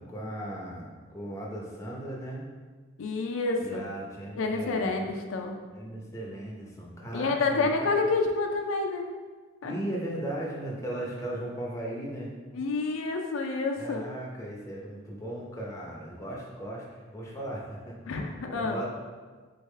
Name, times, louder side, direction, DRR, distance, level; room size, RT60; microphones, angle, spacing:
voice 1, 0.0-2.4 3.6-4.8 5.7-7.9 9.6-12.3 13.8-18.0 18.5-18.9, right 1 dB, 15° left, -3 dB, 0.7 m, -37 dB
voice 2, 3.0-3.9 4.4-5.6 7.1-9.0 9.6-9.8 12.5-14.1 18.1-18.8, left 3 dB, 85° left, 3 dB, 0.4 m, -28 dB
4.0 x 3.5 x 3.2 m, 1.4 s
head